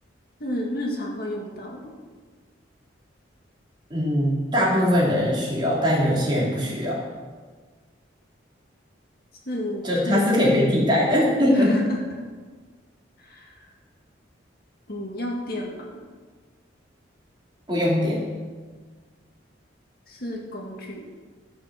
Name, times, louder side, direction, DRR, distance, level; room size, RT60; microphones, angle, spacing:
voice 1, 0.4-2.0 9.5-10.3 11.5-12.0 13.2-13.7 14.9-15.9 20.1-21.1, left 1 dB, 50° left, -1 dB, 2.1 m, -31 dB
voice 2, 3.9-7.0 9.8-11.7 17.7-18.2, left 1 dB, 25° right, -5 dB, 3.2 m, -21 dB
14.5 x 6.1 x 7.7 m, 1.5 s
head